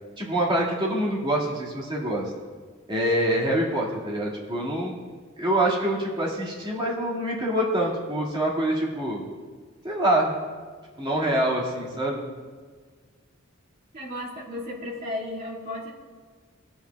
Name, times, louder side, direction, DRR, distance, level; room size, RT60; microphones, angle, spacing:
voice 1, 0.2-2.3 2.9-5.0 5.4-9.2 9.8-10.3 11.0-12.2, right 1 dB, 25° right, -4 dB, 2.0 m, -25 dB
voice 2, 13.9-15.9, left 1 dB, 40° right, -5 dB, 2.1 m, -34 dB
19.0 x 7.9 x 2.3 m, 1.5 s
head